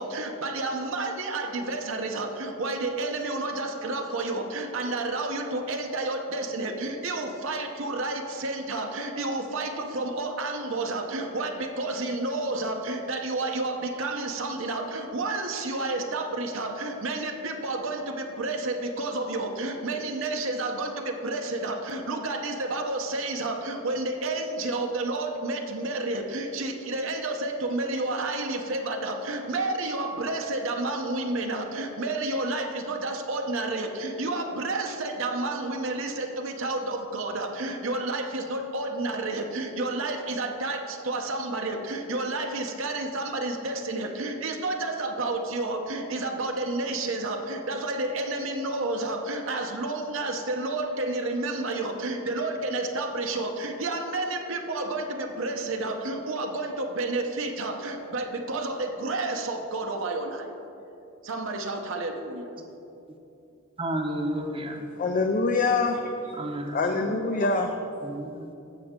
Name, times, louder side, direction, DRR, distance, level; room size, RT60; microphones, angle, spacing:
voice 1, 0.0-60.6 61.2-62.5 67.0-67.5, right 2 dB, 70° right, 3 dB, 0.8 m, -30 dB
voice 2, 63.8-64.8 66.3-66.9 68.0-68.5, right 1 dB, 25° right, 4 dB, 0.8 m, -31 dB
voice 3, 65.0-66.3 66.7-67.7, left 3 dB, 40° left, 4 dB, 0.5 m, -25 dB
15.5 x 6.0 x 3.7 m, 2.8 s
head